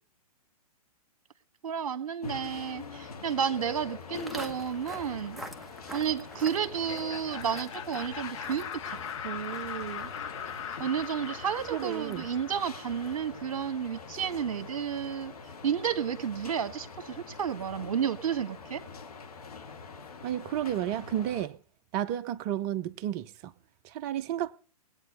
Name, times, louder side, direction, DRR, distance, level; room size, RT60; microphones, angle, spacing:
voice 1, 1.6-5.4 5.9-9.0 9.2-10.1 10.8-15.3 15.6-18.8, right 8 dB, 60° right, 1.4 m, -32 dB
sound 1, 2.2-21.5, left 5 dB, 70° left, 2.0 m, -44 dB
Walk footsteps, 4.1-13.4, equal, ahead, 0.9 m, -48 dB
Laughter, 6.7-13.5, left 8 dB, 50° left, 1.4 m, -41 dB
voice 2, 11.7-12.2 20.2-21.6 21.9-23.5 23.8-24.5, right 11 dB, 30° right, 0.7 m, -32 dB
20.0 x 8.7 x 5.4 m
figure-of-eight pair, 120°, 20 cm